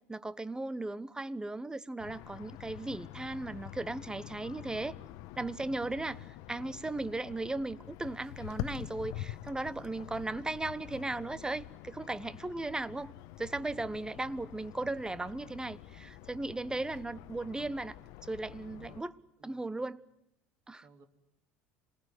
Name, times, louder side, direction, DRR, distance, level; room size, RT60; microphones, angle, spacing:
voice 1, 0.1-5.0 5.4-13.1 13.4-18.0 18.2-19.1 19.4-20.0 20.7-20.8, right 2 dB, 10° right, 1.1 m, -37 dB
sound 1, 2.0-19.0, left 14 dB, 60° left, 1.1 m, -46 dB
voice 2, 13.7-14.3 18.6-19.1 19.4-19.8 20.8-21.1, right 4 dB, 50° right, 3.3 m, -61 dB
27.0 x 20.5 x 7.8 m
hypercardioid pair, 70°, 7 cm